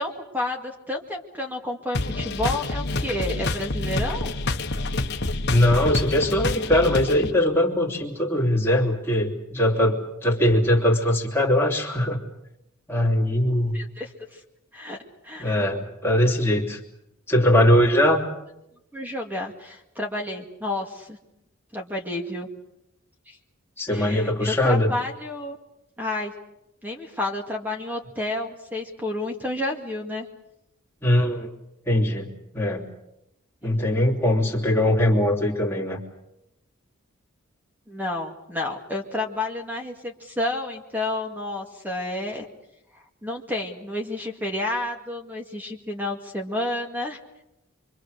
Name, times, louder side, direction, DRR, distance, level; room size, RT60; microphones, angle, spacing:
voice 1, 0.0-4.3 13.7-14.4 14.7-15.0 15.2-15.6 18.9-21.2 21.7-22.5 23.3-23.4 23.9-25.6 26.0-26.3 26.8-30.3 33.6-33.7 37.9-42.5 42.9-47.2, left 1 dB, 10° right, 2 dB, 2.1 m, -30 dB
sound 1, 1.9-7.3, left 2 dB, 50° left, 1.3 m, -27 dB
voice 2, 5.5-12.2 12.9-13.8 15.4-16.8 17.3-18.2 23.8-24.9 31.0-31.5 31.9-32.9 33.6-36.0, left 1 dB, 10° left, -2 dB, 3.3 m, -21 dB
26.0 x 24.5 x 6.7 m, 0.88 s
head